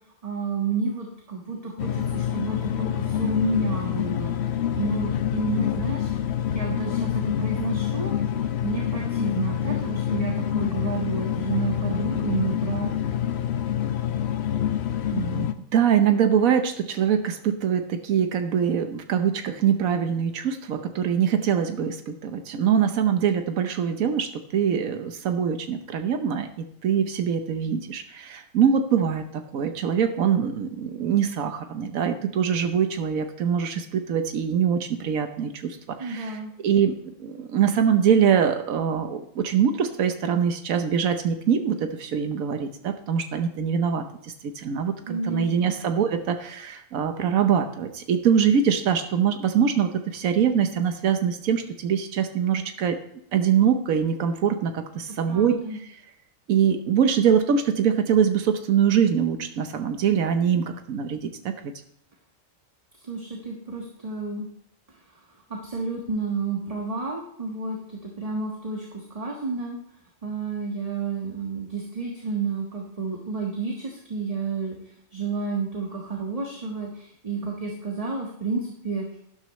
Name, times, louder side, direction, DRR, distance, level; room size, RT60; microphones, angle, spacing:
voice 1, 0.2-4.4 4.8-6.1 6.5-12.9 36.0-36.5 45.1-45.7 55.2-55.8 63.0-64.5 64.9-65.2 65.5-69.8 70.2-74.8 75.1-79.2, right 4 dB, 25° right, 0 dB, 1.4 m, -30 dB
sound 1, 1.8-15.5, left 10 dB, 60° left, 0.9 m, -27 dB
voice 2, 15.1-53.0 53.3-55.6 56.5-61.7, right 8 dB, 90° right, 7 dB, 1.3 m, -23 dB
12.5 x 11.5 x 3.1 m, 0.76 s
omnidirectional pair, 1.4 m